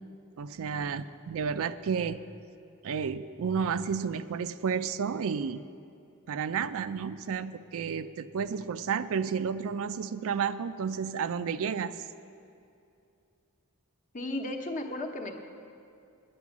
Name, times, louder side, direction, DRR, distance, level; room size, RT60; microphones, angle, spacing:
voice 1, 0.4-2.2 2.8-5.6 6.3-12.0, right 6 dB, 65° right, 12 dB, 0.4 m, -31 dB
voice 2, 14.1-15.4, left 1 dB, 35° left, 4 dB, 1.0 m, -34 dB
9.8 x 9.4 x 7.2 m, 2.7 s
head